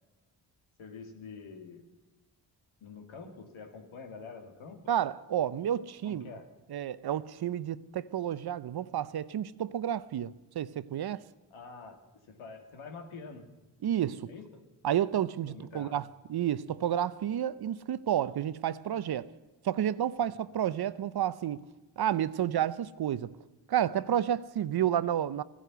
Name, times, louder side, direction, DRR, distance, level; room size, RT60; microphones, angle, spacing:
voice 1, 0.8-1.9 2.8-4.9 6.0-6.5 11.5-12.0 12.3-13.5 14.3-14.6 15.5-16.0 20.2-20.3, left 4 dB, 75° left, 2.1 m, -46 dB
voice 2, 4.9-6.3 6.7-11.2 13.8-14.3 14.8-19.3 19.6-21.6 22.0-23.3 23.7-25.4, right 10 dB, 50° right, 0.6 m, -30 dB
14.0 x 11.0 x 6.8 m
supercardioid pair, 50°, 49 cm